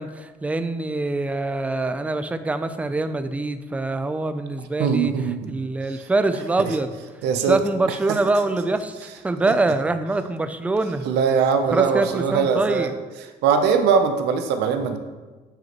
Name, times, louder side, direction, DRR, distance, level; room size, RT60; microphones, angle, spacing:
voice 1, 0.0-5.1 5.5-6.9 7.5-11.1 11.7-13.0, right 2 dB, 10° right, 10 dB, 0.4 m, -24 dB
voice 2, 4.8-5.6 7.2-7.6 11.1-12.9 13.4-15.0, right 6 dB, 85° right, 7 dB, 0.7 m, -21 dB
8.6 x 5.2 x 3.0 m, 1.3 s
cardioid pair, 110°, 17 cm